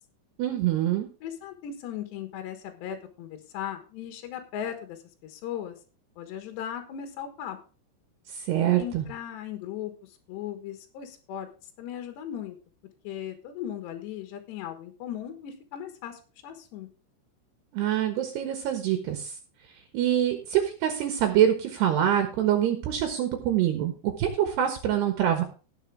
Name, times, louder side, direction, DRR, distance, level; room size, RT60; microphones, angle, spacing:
voice 1, 0.4-1.1 8.3-9.1 17.7-19.4 19.9-25.4, right 11 dB, 70° right, 6 dB, 3.3 m, -25 dB
voice 2, 1.2-5.8 6.2-7.6 8.8-9.9 10.3-11.5 11.8-12.6 13.1-16.9, left 10 dB, 75° left, 6 dB, 3.5 m, -37 dB
18.5 x 6.9 x 3.5 m, 0.35 s
omnidirectional pair, 5.2 m